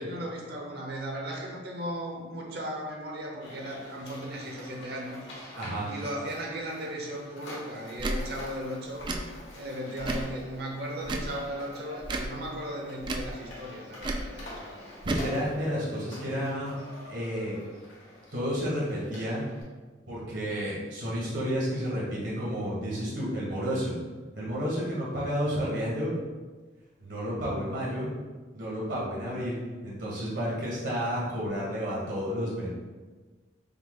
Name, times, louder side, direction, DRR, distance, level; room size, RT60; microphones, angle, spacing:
voice 1, 0.0-5.2 5.8-9.1 9.5-14.8, right 1 dB, 60° right, -1 dB, 0.8 m, -36 dB
sound 1, 3.4-19.6, left 1 dB, 75° left, 1.4 m, -47 dB
voice 2, 5.6-5.9 15.0-16.7 17.1-17.6 18.3-19.5 20.1-23.9 24.3-26.1 27.0-28.1 28.5-32.7, equal, 75° right, -6 dB, 1.4 m, -31 dB
Tick / Tick-tock, 8.0-8.2 9.0-9.2 10.0-10.3 11.0-11.3 12.0-12.3 13.0-13.3 14.0-14.3 15.0-15.3, right 2 dB, 25° right, 0.3 m, -32 dB
5.7 x 2.1 x 3.7 m, 1.3 s
head